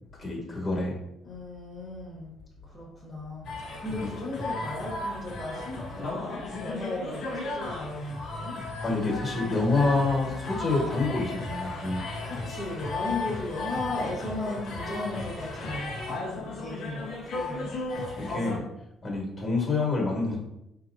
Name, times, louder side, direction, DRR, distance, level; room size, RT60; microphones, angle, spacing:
voice 1, 0.2-0.9 4.0-4.1 8.8-12.0 18.2-18.6 19.0-20.4, left 3 dB, 35° left, -1 dB, 1.5 m, -27 dB
voice 2, 1.2-2.3 2.6-8.6 12.2-16.0 16.3-17.7, left 2 dB, 15° left, -7 dB, 1.2 m, -36 dB
sound 1, 3.4-18.6, left 2 dB, 70° left, 0.7 m, -35 dB
4.1 x 2.9 x 2.6 m, 0.86 s
cardioid pair, 95°, 0 cm